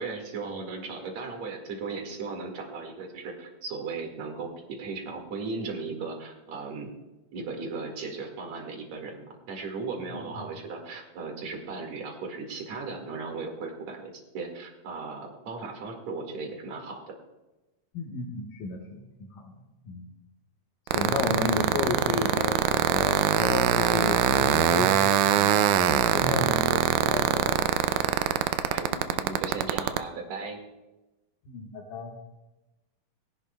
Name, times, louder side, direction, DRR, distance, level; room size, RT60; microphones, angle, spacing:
voice 1, 0.0-4.5 4.8-6.9 7.3-17.0 26.4-26.8 28.7-30.6, right 4 dB, 60° right, 2 dB, 2.9 m, -37 dB
voice 2, 10.1-10.5 17.9-19.1 19.3-19.6 19.8-20.1 20.9-27.7 31.4-32.2, left 3 dB, 85° left, -2 dB, 2.8 m, -33 dB
sound 1, 20.9-30.0, right 10 dB, 80° right, 2.0 m, -23 dB
20.5 x 11.0 x 2.2 m, 1.0 s
omnidirectional pair, 3.7 m